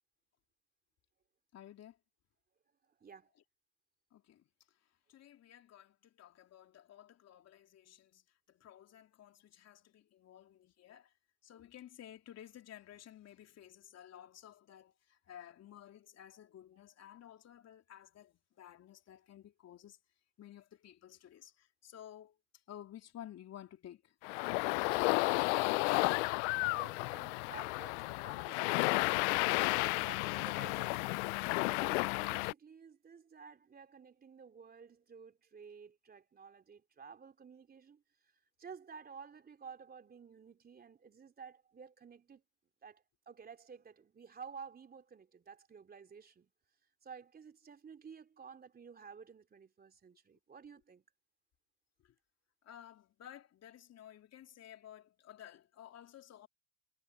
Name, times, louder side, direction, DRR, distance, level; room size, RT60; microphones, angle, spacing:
voice 1, 1.5-2.0 3.4-3.5 4.1-11.2 11.4-20.0 20.4-24.2 52.0-52.2 52.6-56.5, left 11 dB, 35° left, 3.5 m, -54 dB
sound 1, 24.2-32.5, left 29 dB, 55° left, 0.6 m, -32 dB
voice 2, 26.5-38.0 38.6-42.4 42.8-46.5 47.0-51.0, right 6 dB, 20° right, 3.1 m, -53 dB
hypercardioid pair, 90°, 42 cm